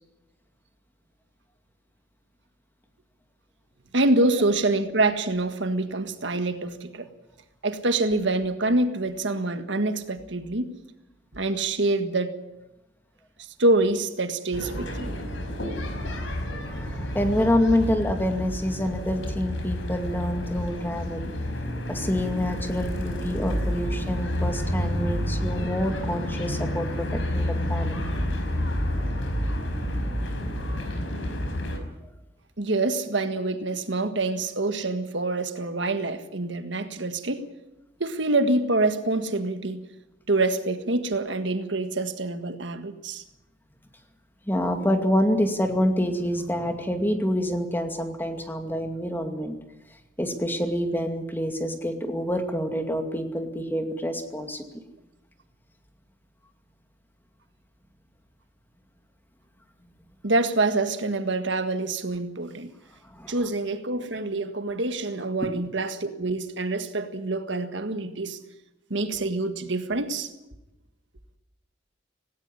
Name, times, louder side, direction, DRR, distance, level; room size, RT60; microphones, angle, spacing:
voice 1, 3.9-7.1 7.6-10.7 11.3-12.3 13.6-15.1 32.6-37.5 38.0-39.8 40.3-43.2 60.2-62.7 63.3-68.4 68.9-70.3, right 2 dB, 70° right, 1.7 m, -26 dB
sound 1, 14.5-31.8, equal, 90° left, 4.9 m, -29 dB
voice 2, 16.6-21.3 21.9-28.0 44.5-49.6 50.2-54.6 63.2-63.4, equal, 10° left, 2.3 m, -27 dB
18.0 x 18.0 x 9.8 m
head